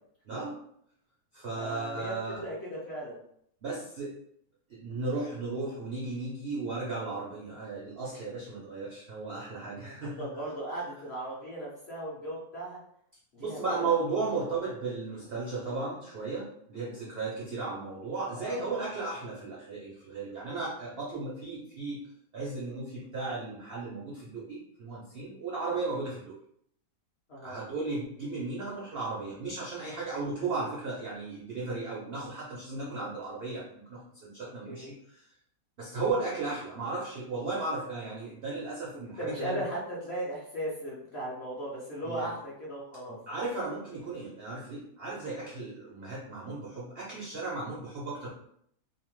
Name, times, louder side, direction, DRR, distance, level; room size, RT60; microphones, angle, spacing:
voice 1, 0.3-0.6 1.3-2.4 3.6-4.2 4.7-10.3 13.4-22.1 22.3-26.4 27.4-35.3 35.8-39.6 42.0-42.3 43.1-48.3, right 3 dB, 70° right, -5 dB, 0.5 m, -35 dB
voice 2, 1.6-3.2 9.8-12.8 13.3-14.0 14.5-14.6 16.9-17.1 18.3-18.8 27.3-27.7 34.4-34.9 38.9-43.2, right 1 dB, 55° left, -6 dB, 0.7 m, -37 dB
2.8 x 2.0 x 3.0 m, 0.69 s
omnidirectional pair, 1.8 m